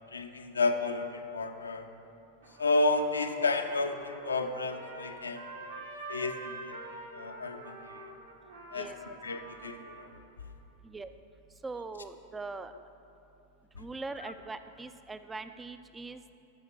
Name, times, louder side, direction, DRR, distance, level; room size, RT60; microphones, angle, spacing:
voice 1, 0.1-1.9 2.6-5.5 6.1-6.8 7.1-8.0 8.7-10.1, left 3 dB, 75° left, 7 dB, 0.6 m, -31 dB
Trumpet, 2.4-10.1, right 2 dB, 65° right, 1.6 m, -46 dB
voice 2, 8.7-9.2 10.8-11.1 11.6-12.7 13.8-16.3, right 3 dB, 10° right, 11 dB, 0.4 m, -41 dB
14.0 x 5.7 x 4.7 m, 2.9 s
figure-of-eight pair, 90°, 0 cm